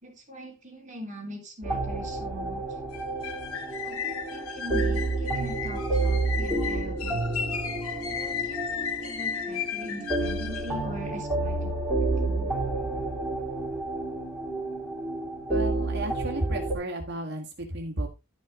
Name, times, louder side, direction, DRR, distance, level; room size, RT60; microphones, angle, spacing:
voice 1, 0.0-2.6 3.8-7.2 8.1-11.7 12.0-12.5, equal, 35° right, 1 dB, 3.0 m, -41 dB
sound 1, 1.6-16.7, right 2 dB, ahead, 4.1 m, -30 dB
sound 2, 2.9-10.8, left 7 dB, 85° left, 1.4 m, -35 dB
voice 2, 15.5-18.1, right 1 dB, 50° right, 1 dB, 1.7 m, -33 dB
12.0 x 6.1 x 3.6 m, 0.26 s
head